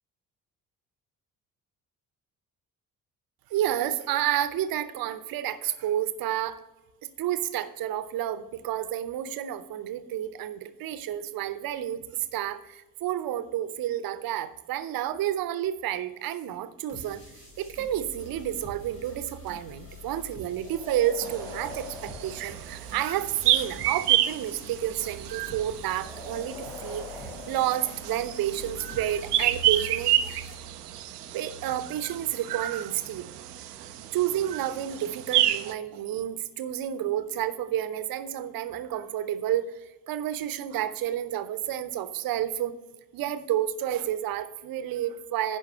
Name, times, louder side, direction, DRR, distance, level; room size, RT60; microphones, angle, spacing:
voice 1, 3.5-6.6 7.2-12.0 12.3-17.2 17.6-30.1 31.3-33.2 34.1-39.8 40.1-42.7 43.1-45.6, right 11 dB, 50° right, 13 dB, 0.8 m, -30 dB
sound 1, 16.9-30.5, equal, 90° left, 1.8 m, -46 dB
sound 2, 20.6-23.3 25.9-28.7, left 3 dB, 10° left, 1.7 m, -44 dB
sound 3, 21.2-35.7, right 12 dB, 80° right, 0.6 m, -30 dB
11.0 x 5.2 x 6.5 m, 1.1 s
figure-of-eight pair, 45°, 46 cm